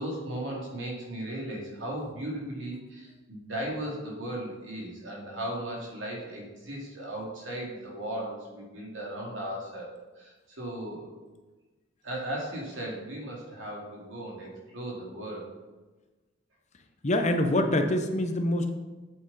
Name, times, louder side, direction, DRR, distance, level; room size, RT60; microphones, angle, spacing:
voice 1, 0.0-11.1 12.0-15.4, right 1 dB, 85° right, -2 dB, 2.7 m, -36 dB
voice 2, 17.0-18.7, left 1 dB, 40° left, 6 dB, 0.9 m, -25 dB
7.9 x 7.9 x 4.2 m, 1.2 s
head